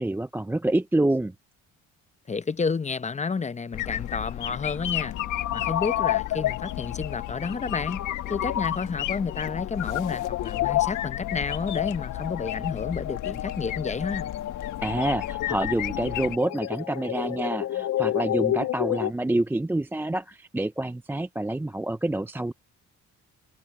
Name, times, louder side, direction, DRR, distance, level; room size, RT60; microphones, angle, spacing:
voice 1, 0.0-1.3 14.8-22.5, right 1 dB, 5° right, 0.5 m, -27 dB
voice 2, 2.3-5.2 5.5-14.3, left 5 dB, 25° left, 0.8 m, -30 dB
sound 1, 3.7-16.4, left 13 dB, 90° left, 1.3 m, -34 dB
sound 2, 4.6-19.1, left 13 dB, 60° left, 0.6 m, -30 dB
cardioid pair, 90°, 30 cm